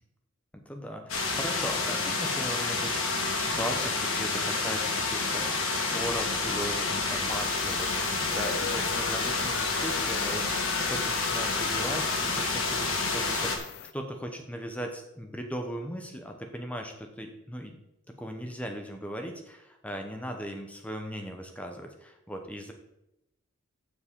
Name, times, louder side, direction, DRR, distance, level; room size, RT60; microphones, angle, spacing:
voice 1, 0.5-3.1 3.4-13.6 13.9-17.8 18.1-22.7, equal, 5° left, 3 dB, 0.9 m, -38 dB
sound 1, 1.1-13.6, left 3 dB, 85° left, 1.9 m, -29 dB
sound 2, 7.3-13.9, left 6 dB, 50° left, 0.5 m, -40 dB
15.0 x 5.0 x 3.7 m, 0.87 s
head